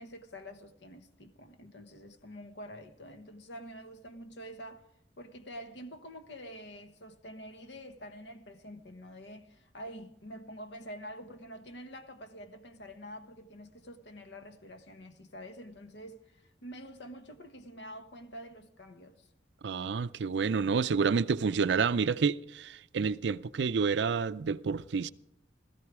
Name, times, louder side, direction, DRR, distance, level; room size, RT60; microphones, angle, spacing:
voice 1, 0.0-4.9 5.2-19.3, equal, 75° left, 1.2 m, -47 dB
voice 2, 19.6-25.1, right 5 dB, 75° right, 0.5 m, -29 dB
17.0 x 14.0 x 4.8 m
head